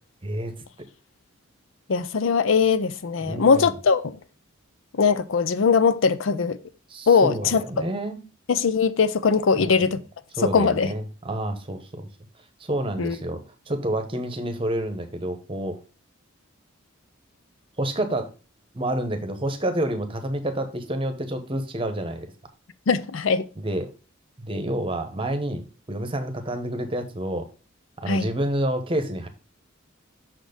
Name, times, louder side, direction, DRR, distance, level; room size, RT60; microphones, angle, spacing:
voice 1, 0.2-0.5 3.3-3.7 6.9-8.2 9.6-9.9 10.4-12.1 12.6-13.4 13.7-15.8 17.8-18.3 18.7-22.3 23.6-23.9 24.4-25.6 25.9-27.5 28.0-29.3, right 1 dB, 25° right, 1.0 m, -28 dB
voice 2, 1.9-4.2 5.0-6.6 7.1-7.9 8.5-10.0 10.4-10.9 13.0-13.2 22.9-23.5 28.1-28.3, left 5 dB, 75° left, 0.5 m, -21 dB
6.2 x 4.2 x 5.1 m
head